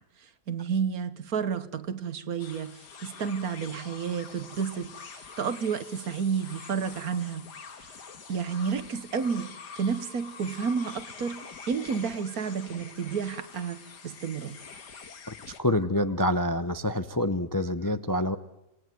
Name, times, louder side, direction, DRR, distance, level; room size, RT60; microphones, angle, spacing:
voice 1, 0.5-7.5 7.8-7.9 8.3-11.4 11.7-14.6, right 6 dB, 65° right, 13 dB, 1.7 m, -31 dB
sound 1, 2.4-15.6, left 5 dB, 85° left, 2.3 m, -46 dB
voice 2, 15.3-18.4, left 1 dB, 20° left, 10 dB, 0.6 m, -27 dB
27.5 x 19.5 x 9.3 m, 0.89 s
omnidirectional pair, 1.7 m